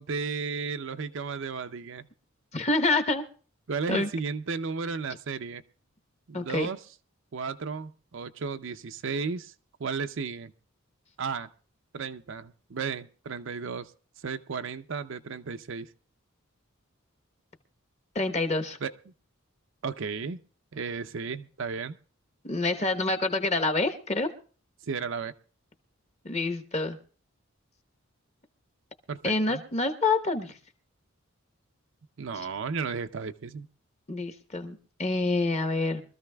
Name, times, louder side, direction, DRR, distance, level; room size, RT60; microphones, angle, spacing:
voice 1, 0.0-2.1 3.7-5.6 6.3-6.8 7.3-9.5 9.8-10.5 11.2-11.5 11.9-13.9 14.2-15.9 18.8-18.9 19.8-20.4 20.7-22.0 24.9-25.3 29.1-29.6 32.2-33.7, right 5 dB, 60° right, 10 dB, 0.5 m, -34 dB
voice 2, 2.5-3.2 3.9-4.1 6.3-6.7 18.1-18.8 22.4-24.3 26.2-27.0 29.2-30.6 32.4-32.5 34.1-36.0, left 3 dB, 30° left, 8 dB, 1.0 m, -27 dB
24.0 x 13.5 x 2.3 m, 0.40 s
head